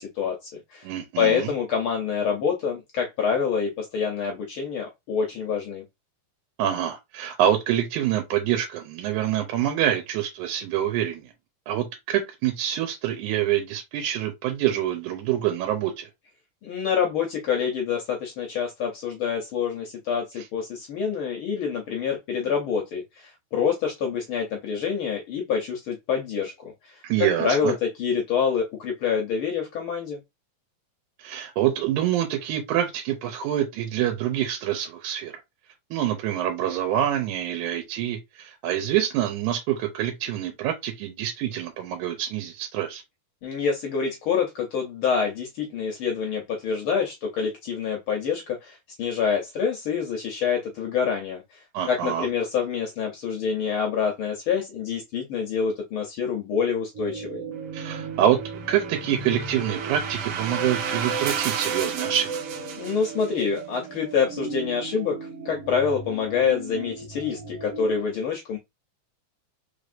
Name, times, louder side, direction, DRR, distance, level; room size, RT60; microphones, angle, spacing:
voice 1, 0.0-0.9 1.2-5.8 16.6-27.0 27.4-30.2 43.4-51.4 51.9-57.4 62.8-65.2 65.4-68.6, left 6 dB, 80° left, 1.1 m, -26 dB
voice 2, 0.8-1.5 6.6-11.2 11.7-16.1 27.0-27.7 31.2-35.3 35.9-43.0 51.7-52.3 57.7-58.4 58.7-62.3, right 11 dB, 90° right, 2.1 m, -26 dB
sound 1, 56.9-68.0, right 4 dB, 55° right, 2.0 m, -36 dB
sound 2, 58.2-63.4, right 8 dB, 75° right, 1.6 m, -33 dB
4.6 x 3.3 x 2.5 m
omnidirectional pair, 3.5 m